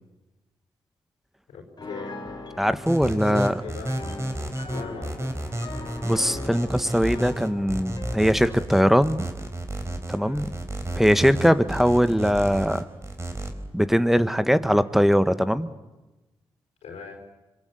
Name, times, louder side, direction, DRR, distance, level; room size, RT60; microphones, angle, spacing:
voice 1, 1.5-2.1 3.0-4.0 4.7-5.6 10.1-10.5 16.8-17.2, left 5 dB, 90° left, 3 dB, 4.4 m, -39 dB
Piano, 1.8-8.7, left 3 dB, 40° left, 4.1 m, -40 dB
voice 2, 2.6-3.5 6.0-9.2 10.1-10.5 10.9-12.9 13.7-15.7, equal, 5° right, 12 dB, 1.5 m, -21 dB
sound 1, 2.9-13.5, right 1 dB, 25° right, 4.3 m, -31 dB
25.5 x 22.5 x 8.3 m, 1.1 s
cardioid pair, 50°, 10 cm